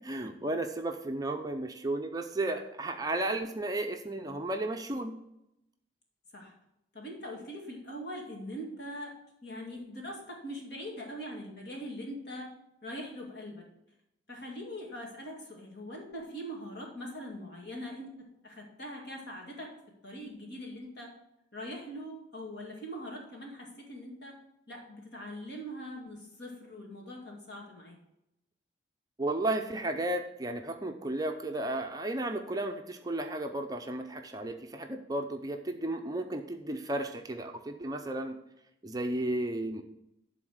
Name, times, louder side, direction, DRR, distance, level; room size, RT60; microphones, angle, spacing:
voice 1, 0.0-5.1 29.2-38.4 38.8-39.8, right 1 dB, 20° right, 4 dB, 0.5 m, -33 dB
voice 2, 6.9-9.1 9.4-12.5 12.8-13.7 14.3-18.1 18.4-19.7 20.0-21.1 21.5-24.4 24.7-28.0, equal, 55° left, 0 dB, 2.2 m, -42 dB
11.0 x 4.0 x 6.3 m, 0.84 s
head